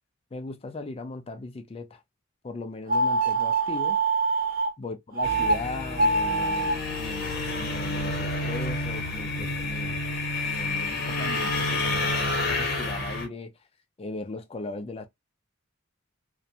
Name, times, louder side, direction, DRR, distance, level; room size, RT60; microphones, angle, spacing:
voice 1, 0.3-2.0 2.4-4.0 4.8-10.0 10.4-13.5 14.0-15.1, left 3 dB, 30° left, 0.4 m, -38 dB
sound 1, 2.9-4.7 5.2-5.6 5.9-6.7, right 3 dB, 45° right, 0.6 m, -24 dB
sound 2, 5.2-13.3, left 2 dB, 50° left, 0.8 m, -29 dB
2.5 x 2.1 x 2.7 m
head